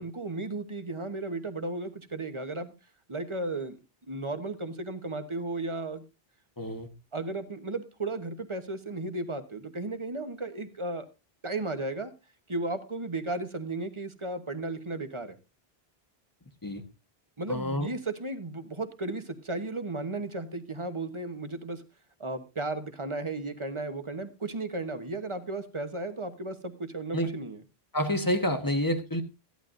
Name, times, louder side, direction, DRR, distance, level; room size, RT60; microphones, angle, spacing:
voice 1, 0.0-2.7 3.1-3.8 4.1-6.0 7.1-11.1 11.4-12.1 12.5-15.4 17.4-21.8 22.2-27.6, right 2 dB, 30° right, 1.1 m, -34 dB
voice 2, 6.6-6.9 16.6-16.8 17.5-17.9 27.1-27.3 27.9-29.2, equal, 20° left, 1.2 m, -28 dB
15.5 x 11.5 x 2.6 m
omnidirectional pair, 1.1 m